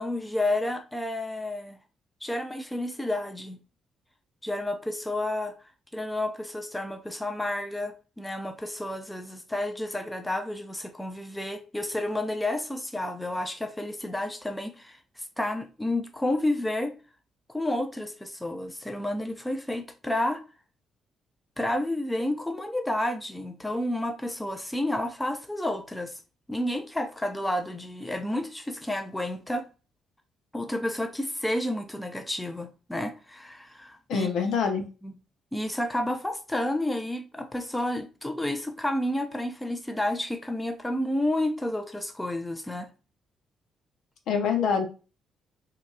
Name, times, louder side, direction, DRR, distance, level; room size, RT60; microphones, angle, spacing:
voice 1, 0.0-1.8 2.2-3.6 4.4-16.9 17.5-20.4 21.6-26.2 26.5-29.7 30.5-34.5 35.0-35.1 35.5-42.9, left 1 dB, 10° left, 0.5 m, -30 dB
voice 2, 34.1-34.8 44.3-44.9, left 6 dB, 70° left, 0.4 m, -25 dB
2.8 x 2.3 x 2.2 m
hypercardioid pair, 45°, 0 cm